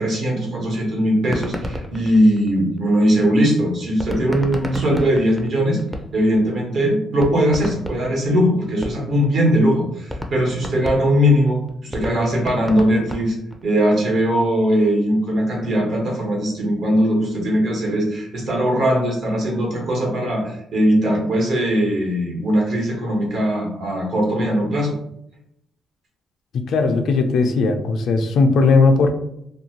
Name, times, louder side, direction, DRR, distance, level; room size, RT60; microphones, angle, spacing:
voice 1, 0.0-5.8 6.1-13.3 13.6-24.9, equal, 65° right, -1 dB, 1.1 m, -20 dB
sound 1, 1.2-3.0 4.0-6.4 6.8-6.9 7.2-9.3 9.6-9.7 10.1-13.7, left 1 dB, 5° right, 0.4 m, -31 dB
voice 2, 26.7-29.1, left 4 dB, 70° left, 6 dB, 0.4 m, -17 dB
2.7 x 2.3 x 2.8 m, 0.77 s
cardioid pair, 90°, 0 cm